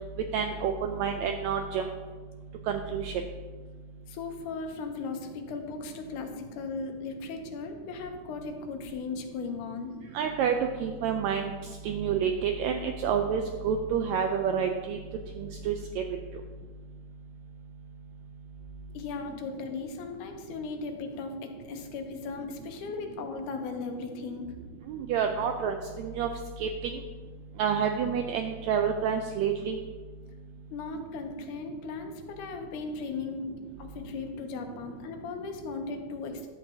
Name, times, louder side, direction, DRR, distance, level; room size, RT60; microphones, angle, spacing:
voice 1, 0.3-1.9 2.7-3.1 10.1-11.5 11.8-15.0 15.4-16.0 24.9-26.3 26.6-26.9 27.6-29.8, right 7 dB, 85° right, 5 dB, 1.6 m, -28 dB
voice 2, 4.1-10.0 18.9-24.6 30.7-33.5 33.8-36.5, left 4 dB, 85° left, 5 dB, 2.3 m, -37 dB
11.0 x 8.1 x 2.8 m, 1.4 s
omnidirectional pair, 3.6 m